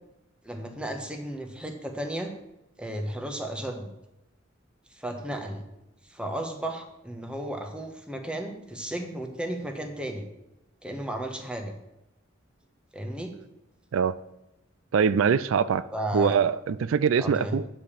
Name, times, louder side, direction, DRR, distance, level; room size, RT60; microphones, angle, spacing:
voice 1, 0.4-2.3 2.8-3.9 4.9-5.6 6.0-10.3 10.8-11.7 12.9-13.3 15.9-16.4 17.2-17.7, right 1 dB, 5° right, 1.1 m, -34 dB
voice 2, 14.9-15.9 16.1-17.7, right 6 dB, 85° right, 0.4 m, -23 dB
9.2 x 5.1 x 7.3 m
head